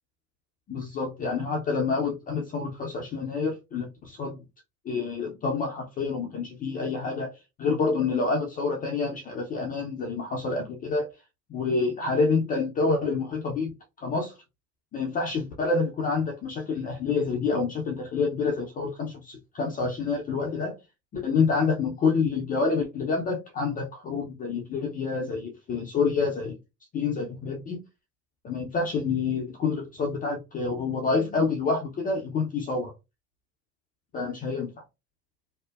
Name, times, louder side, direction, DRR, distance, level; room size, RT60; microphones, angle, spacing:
voice 1, 0.7-4.4 4.9-7.3 7.6-11.1 11.5-13.7 14.0-14.3 14.9-20.8 21.1-26.6 26.9-27.8 28.4-32.9 34.1-34.7, left 4 dB, 20° left, 0.4 m, -28 dB
2.6 x 2.1 x 2.3 m
hypercardioid pair, 85°, 47 cm